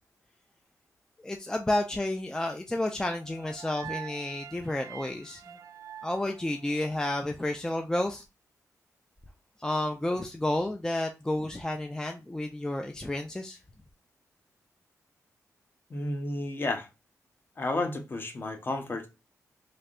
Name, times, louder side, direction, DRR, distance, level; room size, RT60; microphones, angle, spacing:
voice 1, 1.2-5.4 6.0-8.2 9.6-13.6, left 1 dB, 10° left, 0.4 m, -31 dB
sound 1, 3.0-7.2, right 9 dB, 60° right, 0.5 m, -45 dB
voice 2, 15.9-16.9 17.6-19.1, left 2 dB, 35° left, 0.8 m, -32 dB
3.3 x 2.6 x 2.4 m
cardioid pair, 85°, 6 cm